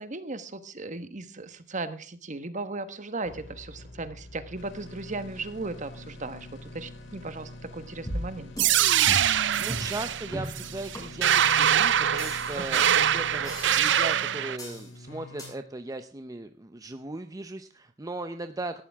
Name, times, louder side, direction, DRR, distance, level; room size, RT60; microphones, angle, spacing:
voice 1, 0.0-8.5 12.6-13.0, right 3 dB, 40° right, 11 dB, 1.3 m, -37 dB
sound 1, 3.2-15.5, left 1 dB, 80° left, 3.5 m, -45 dB
sound 2, 8.1-8.8 9.1-9.4 9.7-9.9 10.3-10.6 10.9-11.0 11.4-11.6 12.2-12.8 13.4-14.2 14.6-14.9 15.4-15.5, equal, 20° left, 7.4 m, -37 dB
sound 3, 8.6-14.6, right 10 dB, 70° right, 0.6 m, -24 dB
voice 2, 9.6-18.8, right 2 dB, 20° right, 8 dB, 0.7 m, -38 dB
18.5 x 13.0 x 3.5 m, 0.39 s
head